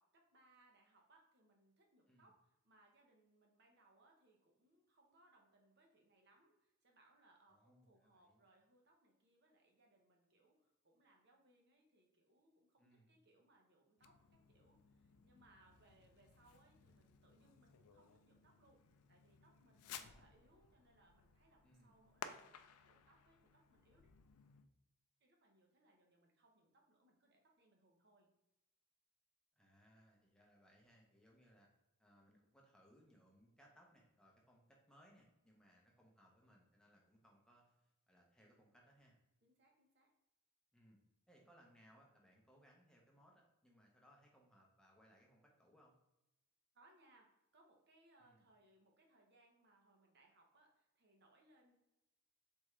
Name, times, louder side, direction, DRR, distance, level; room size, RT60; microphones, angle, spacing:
voice 1, 0.0-18.8 19.1-22.5 22.8-24.2 25.2-28.3 39.4-40.1 46.7-47.3 47.5-51.8, right 2 dB, 50° right, 1 dB, 0.9 m, -72 dB
voice 2, 7.5-8.4 12.8-13.1 19.8-20.3 21.6-22.0 29.6-31.7 32.0-39.2 40.7-41.0 41.3-46.0 48.2-48.5, equal, 5° left, -1 dB, 0.7 m, -69 dB
Fireworks, 14.0-24.7, left 7 dB, 85° left, 0.4 m, -58 dB
4.3 x 3.6 x 3.2 m, 0.91 s
head